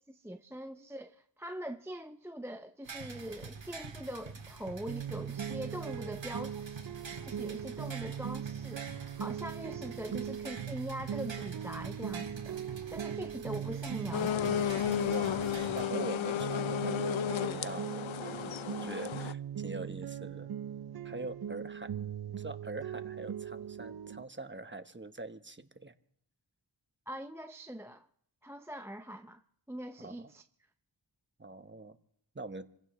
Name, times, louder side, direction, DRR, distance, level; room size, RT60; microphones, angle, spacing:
voice 1, 0.1-6.8 7.2-14.8 27.1-28.1 28.4-29.4 29.7-30.4, equal, 5° right, 0.5 m, -42 dB
sound 1, 2.8-15.8, right 4 dB, 70° right, 2.1 m, -46 dB
sound 2, 4.9-24.2, right 9 dB, 55° right, 0.6 m, -40 dB
sound 3, 14.1-19.3, left 10 dB, 80° left, 0.6 m, -33 dB
voice 2, 15.0-20.5 21.0-21.9 22.3-25.9 30.0-30.1 31.4-32.0 32.3-32.6, right 2 dB, 25° right, 1.0 m, -43 dB
28.5 x 16.0 x 3.1 m
wide cardioid pair, 65°, 46 cm